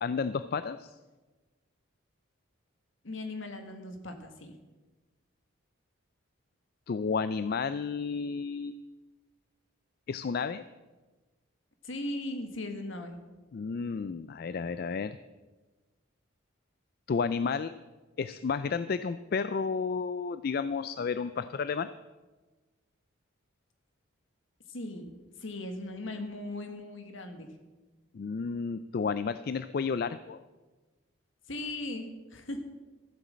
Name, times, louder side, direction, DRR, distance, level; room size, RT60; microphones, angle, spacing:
voice 1, 0.0-0.9 6.9-8.7 10.1-10.6 13.5-15.2 17.1-17.7 18.2-21.9 28.1-30.4, left 5 dB, 45° left, 13 dB, 0.3 m, -32 dB
voice 2, 3.0-4.5 11.8-13.2 24.7-25.1 25.4-27.5 31.5-32.6, left 2 dB, 65° left, 6 dB, 1.7 m, -38 dB
14.0 x 8.0 x 7.4 m, 1.2 s
head